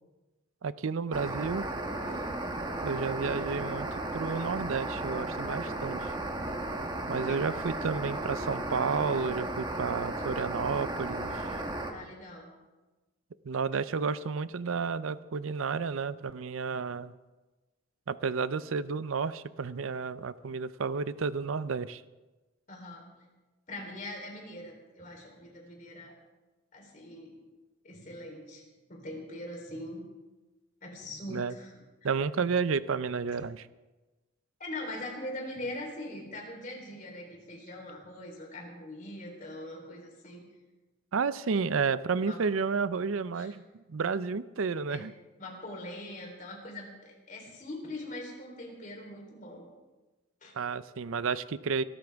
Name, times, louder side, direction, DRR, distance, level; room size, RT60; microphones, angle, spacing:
voice 1, 0.6-1.7 2.8-3.9 4.1-6.1 7.1-11.5 13.4-17.1 18.1-22.0 31.3-31.5 32.0-33.7 41.1-43.6 43.9-45.1 50.5-51.8, right 5 dB, 75° right, 16 dB, 0.5 m, -31 dB
sound 1, 1.1-11.9, right 2 dB, 20° right, 1.2 m, -35 dB
voice 2, 2.0-2.3 7.3-7.4 11.9-12.5 22.7-23.1 23.7-26.1 26.7-27.3 27.8-28.6 28.9-30.0 30.8-31.7 32.0-32.2 34.6-40.4 42.3-42.4 43.4-43.5 44.9-45.1 45.4-49.7 50.4-50.6, left 1 dB, 40° left, 1 dB, 3.7 m, -42 dB
23.5 x 13.0 x 3.5 m, 1.2 s
head